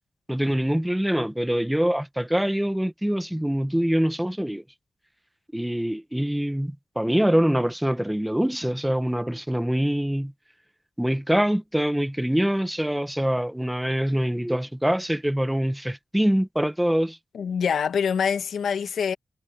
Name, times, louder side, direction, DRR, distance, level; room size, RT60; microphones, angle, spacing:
voice 1, 0.3-4.6 5.5-10.3 11.0-17.2, equal, 5° right, 1.3 m, -24 dB
voice 2, 17.3-19.1, left 7 dB, 90° left, 1.6 m, -25 dB
cardioid pair, 75°, 0 cm